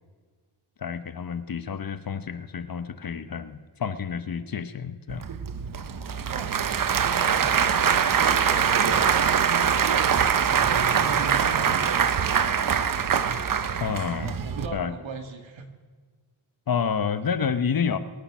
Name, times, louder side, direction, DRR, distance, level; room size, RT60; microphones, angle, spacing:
voice 1, 0.8-5.3 13.8-14.4 14.7-14.9 16.7-18.0, left 6 dB, 45° left, 12 dB, 1.0 m, -29 dB
Applause / Crowd, 5.1-14.7, right 7 dB, 45° right, 0.8 m, -23 dB
voice 2, 7.0-7.8 8.2-10.1 10.3-11.9 14.2-15.7, right 4 dB, 70° right, 5 dB, 2.1 m, -38 dB
24.0 x 8.8 x 6.1 m, 1.5 s
cardioid pair, 85°, 48 cm